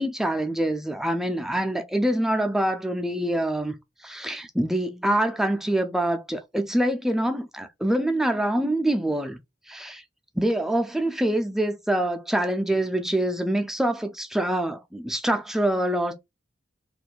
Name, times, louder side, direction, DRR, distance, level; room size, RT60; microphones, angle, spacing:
voice 1, 0.0-3.7 4.0-9.4 9.7-10.0 10.4-16.1, right 1 dB, ahead, 0.3 m, -25 dB
2.5 x 2.3 x 3.8 m
head